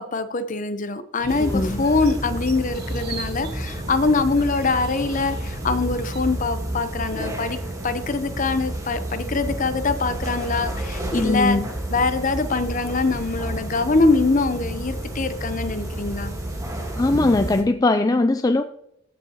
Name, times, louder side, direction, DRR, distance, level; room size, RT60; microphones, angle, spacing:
voice 1, 0.0-7.6 7.8-11.6 11.9-16.3, left 3 dB, 40° left, 10 dB, 0.8 m, -23 dB
sound 1, 1.2-6.2, right 2 dB, 55° right, 1.2 m, -36 dB
sound 2, 1.3-17.6, right 1 dB, 15° right, 1.5 m, -31 dB
voice 2, 1.4-1.9 11.1-11.7 17.0-18.6, left 2 dB, 20° left, 7 dB, 0.3 m, -20 dB
15.5 x 6.3 x 2.9 m, 0.76 s
head